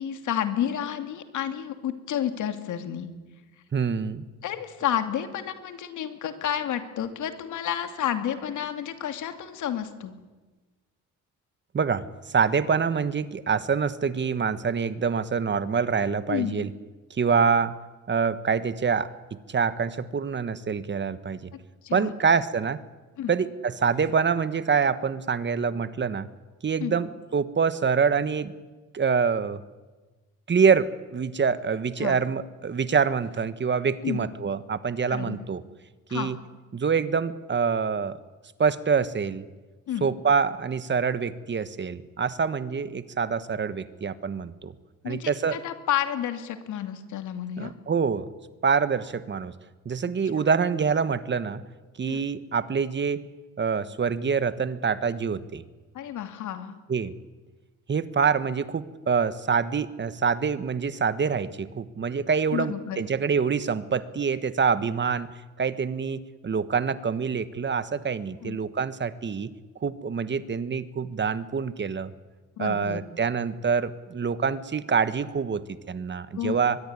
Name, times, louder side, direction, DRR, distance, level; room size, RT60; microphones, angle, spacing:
voice 1, 0.0-3.1 4.4-10.1 16.3-16.6 21.8-22.2 23.2-23.3 26.8-26.9 32.0-32.2 34.0-34.2 35.1-35.4 36.1-36.4 39.9-40.1 45.0-47.7 50.3-50.5 52.0-52.2 55.9-56.8 62.5-63.0 68.4-68.6 72.6-73.0 76.4-76.6, left 10 dB, 75° left, 8 dB, 2.8 m, -30 dB
voice 2, 3.7-4.2 11.7-16.7 17.2-17.7 18.1-21.5 21.9-22.8 23.3-26.3 26.6-28.5 28.9-29.6 30.5-35.6 36.1-36.4 36.7-38.2 38.6-39.5 40.0-44.7 45.0-45.6 47.6-48.3 48.6-49.5 49.8-51.6 52.0-53.2 53.6-55.6 56.9-57.1 57.9-69.5 69.8-72.1 72.6-76.8, right 6 dB, 40° right, 14 dB, 1.4 m, -26 dB
23.0 x 22.0 x 9.8 m, 1.3 s
cardioid pair, 90°, 30 cm